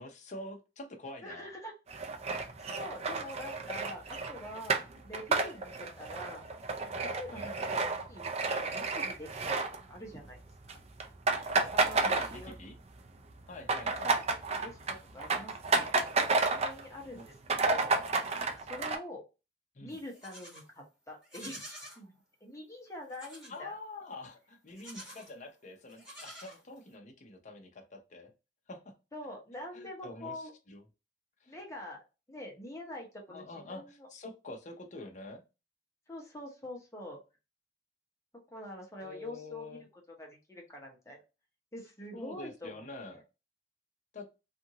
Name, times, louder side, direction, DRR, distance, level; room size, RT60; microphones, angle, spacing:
voice 1, 0.0-1.5 7.3-7.5 12.0-12.8 13.5-14.2 17.1-17.3 19.7-20.0 23.5-28.3 28.7-28.9 29.7-30.8 31.4-31.6 33.3-35.4 39.0-39.8 42.1-43.2 44.1-44.3, left 2 dB, 45° left, 3 dB, 0.6 m, -46 dB
voice 2, 1.2-1.7 2.7-6.4 7.2-8.3 8.6-9.6 9.9-10.4 10.7-10.8 11.7-12.7 13.8-14.2 14.6-16.0 16.5-17.3 17.6-17.9 18.5-19.2 19.8-22.1 22.4-23.8 29.1-30.5 31.5-32.0 32.3-34.1 36.1-37.2 38.5-39.8 40.1-41.2 41.7-42.8 43.1-43.2, left 1 dB, 20° left, -1 dB, 0.9 m, -45 dB
sound 1, 1.9-10.3 10.6-10.7 11.0-12.8 13.1-16.8 17.2-17.3 17.5-19.0, right 3 dB, 35° right, 0.4 m, -31 dB
Livestock farm animals working animals, 19.9-20.7 21.2-22.0 23.1-23.6 24.7-25.3 25.9-26.9, equal, 5° right, 1.5 m, -49 dB
2.7 x 2.5 x 2.8 m, 0.28 s
head